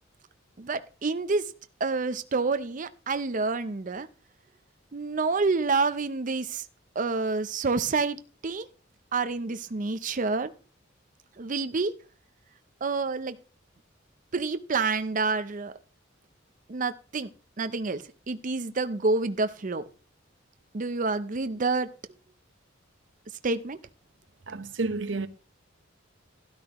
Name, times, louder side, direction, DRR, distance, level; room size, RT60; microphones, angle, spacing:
voice 1, 0.6-1.5 1.8-4.1 4.9-6.7 6.9-8.7 9.1-10.5 11.4-11.9 12.8-13.4 14.3-15.7 16.7-17.3 17.6-19.8 20.7-21.9 23.4-23.8, right 3 dB, 40° right, 0.6 m, -28 dB
voice 2, 24.5-25.3, right 3 dB, 70° right, 0.9 m, -30 dB
12.5 x 12.0 x 3.0 m
head